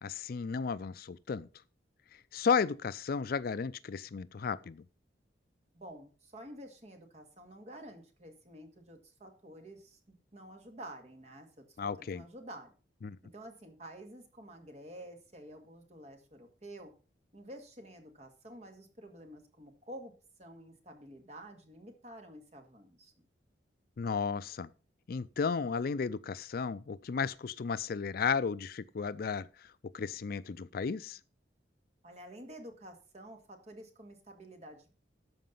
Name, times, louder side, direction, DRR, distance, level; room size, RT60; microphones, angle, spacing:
voice 1, 0.0-1.5 2.3-4.8 11.8-12.2 13.0-13.2 24.0-24.7 25.1-29.5 29.9-31.2, left 5 dB, 55° left, 0.4 m, -33 dB
voice 2, 5.7-12.7 13.2-16.9 17.3-20.1 20.4-23.3 32.0-34.9, right 1 dB, 35° right, 2.1 m, -50 dB
13.0 x 5.1 x 5.4 m
head